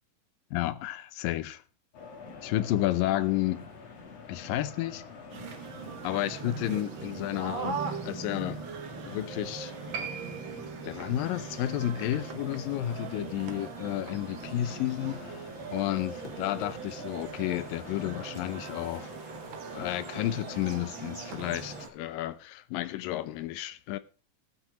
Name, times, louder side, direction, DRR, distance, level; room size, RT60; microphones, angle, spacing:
voice 1, 0.5-1.6 2.4-3.6 4.3-5.0 6.0-7.8 8.1-8.6 9.1-9.7 10.8-19.1 19.7-24.0, left 14 dB, 80° left, 2.3 m, -31 dB
sound 1, 1.9-21.9, left 4 dB, 50° left, 2.6 m, -47 dB
sound 2, 5.3-21.9, right 6 dB, 85° right, 1.0 m, -40 dB
Piano, 9.9-16.9 17.1-17.2, right 6 dB, 55° right, 3.3 m, -46 dB
16.0 x 6.0 x 4.9 m
omnidirectional pair, 4.1 m